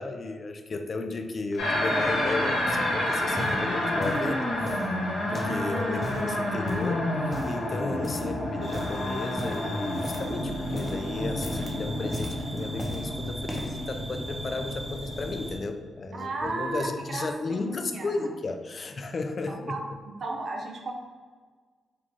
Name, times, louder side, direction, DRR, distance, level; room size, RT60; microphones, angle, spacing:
voice 1, 0.0-4.8 5.3-19.8, left 3 dB, 55° left, 6 dB, 0.4 m, -34 dB
sound 1, 1.5-2.3 2.7-2.9 3.3-4.3 4.7-5.6 5.9-6.3 6.7-7.0 7.3-7.7 8.0-8.4 8.6-9.0 9.4-10.4 10.6-11.0 11.3-11.8 12.1-13.1 13.4-13.8 14.5-14.6, left 1 dB, 25° left, 0.8 m, -37 dB
sound 2, 1.6-15.6, left 1 dB, 90° left, 0.9 m, -29 dB
voice 2, 6.0-6.3 16.1-18.3 19.5-19.8 20.2-20.9, right 2 dB, 65° right, 1 dB, 0.6 m, -34 dB
sound 3, 8.6-15.5, right 1 dB, 35° right, 1.1 m, -42 dB
3.8 x 2.4 x 3.1 m, 1.5 s
supercardioid pair, 45°, 0 cm